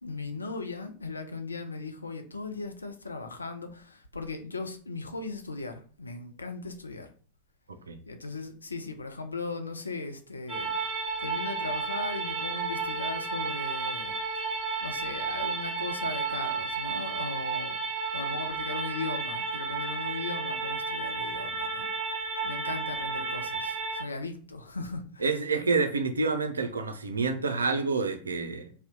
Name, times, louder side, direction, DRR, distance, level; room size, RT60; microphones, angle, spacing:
voice 1, 0.0-7.1 8.1-14.5 14.8-17.8 18.1-22.1 22.4-25.3, left 3 dB, 80° left, 0.4 m, -38 dB
sound 1, 10.5-24.0, right 4 dB, 25° right, 0.7 m, -32 dB
voice 2, 25.2-28.7, right 4 dB, 75° right, 0.3 m, -28 dB
2.7 x 2.1 x 3.6 m
figure-of-eight pair, 90°, 0 cm